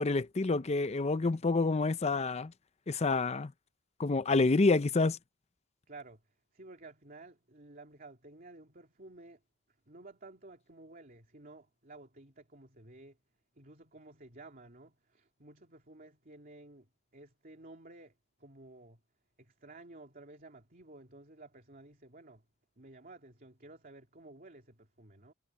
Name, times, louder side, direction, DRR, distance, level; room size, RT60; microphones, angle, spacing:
voice 1, 0.0-2.5 2.9-3.5 4.0-5.2, left 3 dB, 30° left, 0.5 m, -28 dB
voice 2, 5.9-9.4 9.9-13.2 13.6-16.9 17.1-18.1 18.4-19.0 19.4-22.4 22.8-25.3, right 2 dB, 45° right, 2.9 m, -53 dB
head